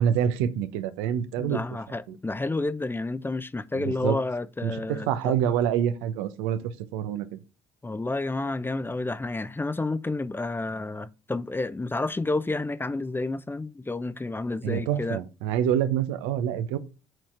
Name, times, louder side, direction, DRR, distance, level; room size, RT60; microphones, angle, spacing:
voice 1, 0.0-1.6 2.1-2.2 3.7-4.2 4.6-7.4 14.6-16.8, right 9 dB, 75° right, 0.9 m, -26 dB
voice 2, 1.4-5.3 7.8-15.2, left 2 dB, 15° left, 0.6 m, -30 dB
8.1 x 4.3 x 4.6 m
hypercardioid pair, 55°, 14 cm